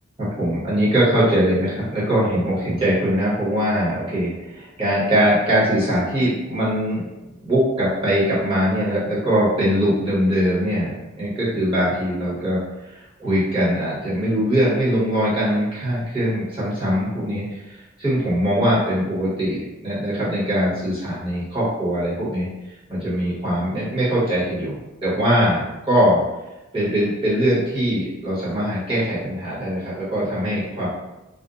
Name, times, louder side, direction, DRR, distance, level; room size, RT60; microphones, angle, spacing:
voice 1, 0.2-7.0 7.4-22.5 22.9-26.2 26.7-30.9, equal, 25° right, -10 dB, 1.0 m, -21 dB
2.6 x 2.1 x 2.4 m, 1.0 s
head